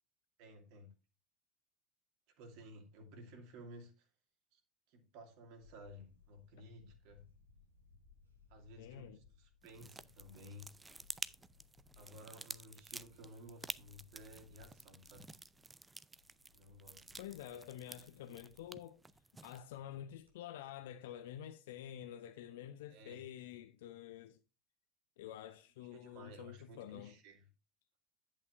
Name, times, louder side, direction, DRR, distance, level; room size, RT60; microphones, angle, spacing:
voice 1, 0.4-0.9 2.4-4.1 4.5-4.6 4.9-7.3 8.5-10.8 12.0-15.3 16.5-17.1 22.9-23.2 25.8-27.5, equal, 55° right, 2.5 m, -55 dB
Camera, 5.6-20.4, left 5 dB, 80° right, 1.9 m, -67 dB
voice 2, 8.8-9.2 17.2-19.0 19.4-24.4 25.2-27.2, left 11 dB, 65° left, 0.6 m, -49 dB
sound 1, 9.6-19.6, right 3 dB, 15° right, 0.5 m, -51 dB
11.0 x 8.6 x 2.6 m
figure-of-eight pair, 70°, 0 cm